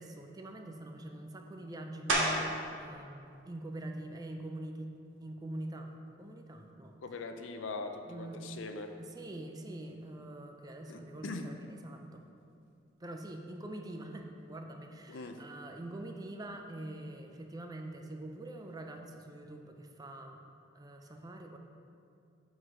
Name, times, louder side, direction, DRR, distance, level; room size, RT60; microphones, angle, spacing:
voice 1, 0.0-4.9 5.2-5.9 6.2-6.9 8.1-8.4 9.0-12.2 13.0-20.4 20.7-21.6, right 1 dB, 20° right, 4 dB, 0.5 m, -44 dB
sound 1, 2.1-2.7 3.2-7.7 8.2-13.4 13.6-19.3, right 1 dB, 80° right, 1.6 m, -41 dB
voice 2, 7.0-8.9 10.9-11.5 15.1-15.4, left 3 dB, 75° left, 6 dB, 0.5 m, -41 dB
8.0 x 4.0 x 6.0 m, 2.5 s
head